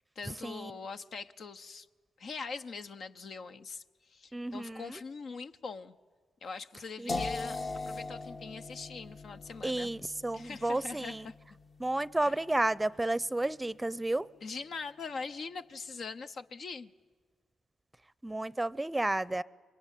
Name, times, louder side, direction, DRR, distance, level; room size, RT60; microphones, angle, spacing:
voice 1, 0.2-1.9 2.2-6.0 6.4-9.9 10.3-11.3 12.2-12.4 14.4-16.9, left 4 dB, 60° left, 0.9 m, -42 dB
voice 2, 4.3-5.0 7.0-7.2 9.6-11.3 11.8-14.3 18.2-19.4, right 2 dB, 15° right, 0.7 m, -32 dB
sound 1, 7.1-13.0, left 3 dB, 45° left, 1.2 m, -41 dB
26.0 x 22.5 x 9.2 m
hypercardioid pair, 45°, 0 cm